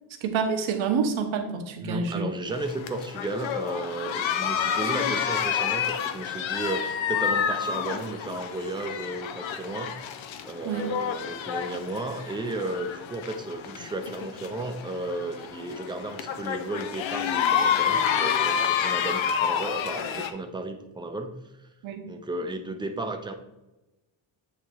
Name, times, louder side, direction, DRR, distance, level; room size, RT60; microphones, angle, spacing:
voice 1, 0.2-2.2 10.6-10.9 21.8-22.0, right 5 dB, 70° right, 5 dB, 1.1 m, -27 dB
voice 2, 1.8-10.0 10.4-21.7 22.1-23.3, right 2 dB, 10° right, 5 dB, 0.6 m, -34 dB
sound 1, 2.5-20.3, left 8 dB, 70° left, 0.7 m, -29 dB
8.5 x 2.9 x 4.5 m, 1.0 s
cardioid pair, 120°, 48 cm